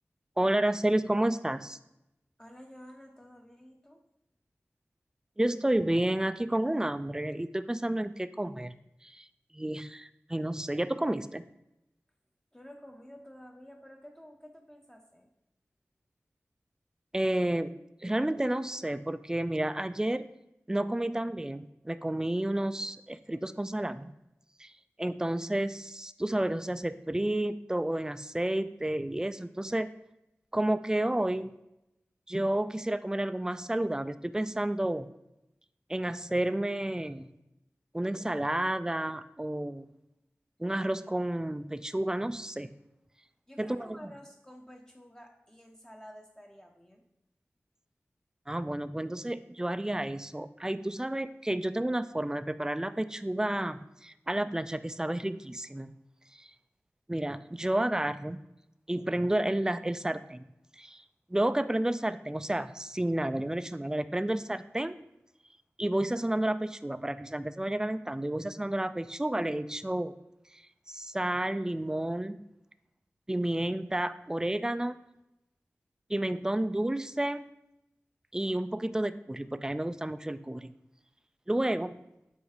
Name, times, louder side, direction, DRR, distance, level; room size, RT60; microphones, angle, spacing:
voice 1, 0.4-1.8 5.4-8.7 9.0-9.3 9.5-11.4 17.1-20.3 20.7-24.1 24.6-24.7 25.0-29.9 30.5-31.5 32.3-35.1 35.9-37.3 37.9-39.9 40.6-42.7 43.6-44.0 48.5-55.9 56.3-56.5 57.1-58.4 58.9-60.5 60.8-61.0 61.3-65.0 65.8-70.1 70.5-70.6 70.9-72.4 73.3-75.0 76.1-77.5 78.3-80.8 81.5-82.0, right 1 dB, 15° right, 13 dB, 0.3 m, -31 dB
voice 2, 2.4-4.0 12.5-15.3 43.5-47.0, equal, 10° left, 2 dB, 0.7 m, -51 dB
7.8 x 2.7 x 4.9 m, 0.88 s
cardioid pair, 40°, 5 cm